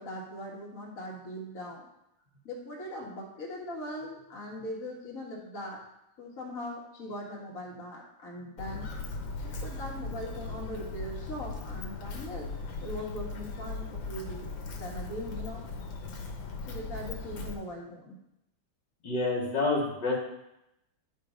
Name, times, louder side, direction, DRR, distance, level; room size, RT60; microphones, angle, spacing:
voice 1, 0.0-1.9 2.4-5.8 6.2-8.9 9.4-12.5 12.8-15.7 16.7-18.2, equal, 50° left, -3 dB, 1.9 m, -40 dB
Walk footsteps, 8.6-17.5, left 3 dB, 85° left, 1.8 m, -38 dB
voice 2, 19.0-20.2, left 3 dB, 65° left, -3 dB, 2.2 m, -28 dB
10.5 x 4.1 x 5.1 m, 0.84 s
omnidirectional pair, 2.0 m